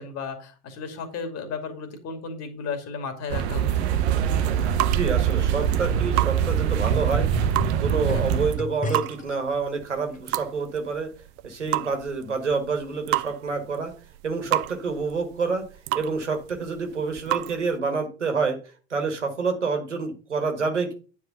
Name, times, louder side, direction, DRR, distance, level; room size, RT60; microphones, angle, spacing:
voice 1, 0.0-3.9 8.0-8.3, left 5 dB, 45° left, 7 dB, 2.4 m, -34 dB
sound 1, 3.3-8.6, right 9 dB, 65° right, 1.0 m, -23 dB
sound 2, 4.3-17.8, right 19 dB, 50° right, 0.6 m, -33 dB
voice 2, 4.9-7.3 7.8-11.1 11.4-13.9 14.2-15.6 15.9-18.6 18.9-20.9, right 4 dB, 85° right, 5 dB, 1.6 m, -27 dB
sound 3, 5.0-9.4 10.1-10.2, left 2 dB, 20° left, 1.1 m, -34 dB
9.5 x 4.8 x 5.4 m, 0.36 s
figure-of-eight pair, 65°, 35 cm